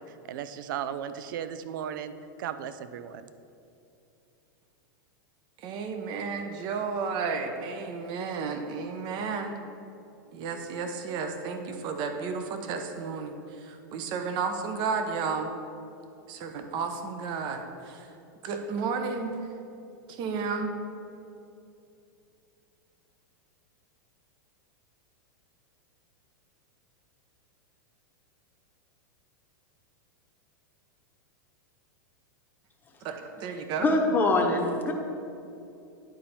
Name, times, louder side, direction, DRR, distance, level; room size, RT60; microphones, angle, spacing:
voice 1, 0.0-2.1 2.4-3.2, right 9 dB, 70° right, 12 dB, 0.4 m, -36 dB
voice 2, 5.6-9.6 10.3-15.5 16.3-18.1 18.4-19.4 20.1-20.7 33.0-33.9, right 5 dB, 40° right, 6 dB, 0.8 m, -32 dB
voice 3, 33.8-34.9, left 2 dB, 15° left, 1 dB, 0.9 m, -23 dB
9.7 x 4.3 x 4.2 m, 2.7 s
hypercardioid pair, 120°, 11 cm